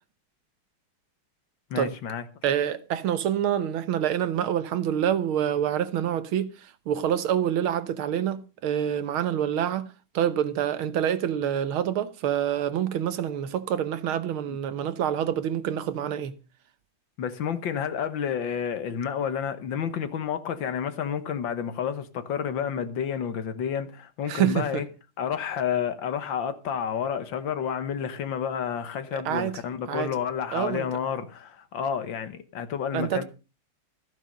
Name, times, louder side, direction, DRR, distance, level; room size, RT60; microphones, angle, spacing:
voice 1, 1.7-2.3 14.5-14.6 17.2-24.9 25.2-33.2, left 8 dB, 65° left, 1.8 m, -30 dB
voice 2, 2.4-16.3 24.3-24.8 29.1-29.6 29.9-30.1 30.5-30.9 32.9-33.2, right 10 dB, 80° right, 1.8 m, -27 dB
14.0 x 8.9 x 5.2 m
omnidirectional pair, 2.3 m